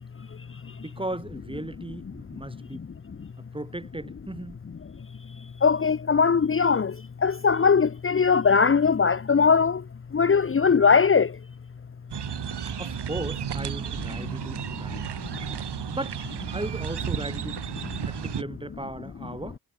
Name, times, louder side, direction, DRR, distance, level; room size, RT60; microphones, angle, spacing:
voice 1, 0.7-2.9 3.4-4.6 12.6-15.1 15.9-16.2 16.5-19.6, right 1 dB, 15° right, 2.9 m, -37 dB
voice 2, 5.6-6.9 7.2-9.8 10.1-11.3, left 5 dB, 30° left, 0.8 m, -20 dB
sound 1, 12.1-18.4, right 9 dB, 85° right, 4.1 m, -33 dB
cardioid pair, 70°, 39 cm